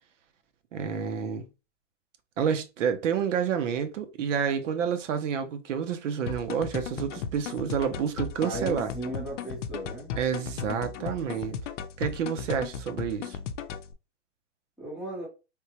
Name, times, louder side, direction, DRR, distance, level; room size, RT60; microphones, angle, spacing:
voice 1, 0.7-1.5 2.4-8.9 10.2-11.6 12.0-13.4, right 7 dB, 80° right, 0.8 m, -29 dB
sound 1, 6.3-13.9, left 7 dB, 80° left, 0.6 m, -36 dB
voice 2, 8.4-10.1 14.8-15.3, right 1 dB, ahead, 0.4 m, -36 dB
3.5 x 2.1 x 2.8 m
supercardioid pair, 165°, 36 cm